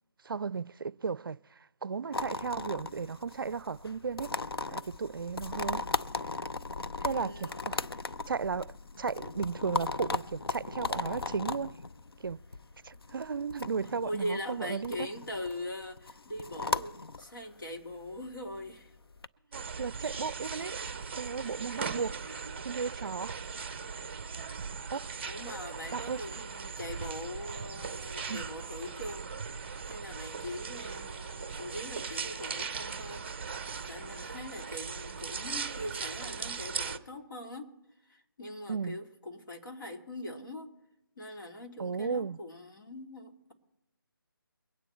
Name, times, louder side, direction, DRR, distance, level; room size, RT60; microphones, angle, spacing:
voice 1, 0.2-1.4 1.8-4.4 4.7-5.9 7.0-7.8 8.3-11.8 12.2-12.4 12.8-15.1 19.5-20.8 21.2-22.2 22.6-23.4 24.9-25.1 25.9-26.2 28.3-28.4 38.7-39.0 41.8-42.4, right 5 dB, 65° right, 0.4 m, -35 dB
sound 1, 2.1-19.3, left 3 dB, 90° left, 0.7 m, -38 dB
voice 2, 7.1-8.0 14.0-18.9 20.1-20.2 21.5-21.6 25.2-29.3 29.8-33.5 33.9-37.8 38.1-40.7 41.2-43.5, left 1 dB, 60° left, 2.7 m, -41 dB
sound 2, 19.5-37.0, right 5 dB, 30° right, 0.7 m, -39 dB
23.0 x 9.3 x 4.4 m
figure-of-eight pair, 170°, 12 cm